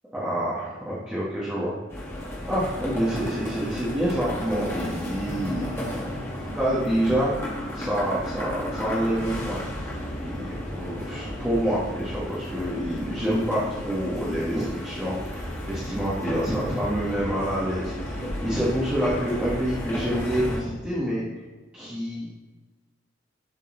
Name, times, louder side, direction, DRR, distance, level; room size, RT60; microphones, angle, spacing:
voice 1, 0.1-1.7 2.4-5.9 6.1-6.2 6.5-9.6 10.2-21.2 21.7-22.3, equal, 5° right, -9 dB, 1.3 m, -27 dB
sound 1, 1.9-20.6, left 1 dB, 15° left, 1.7 m, -34 dB
11.0 x 4.1 x 3.8 m, 1.3 s
head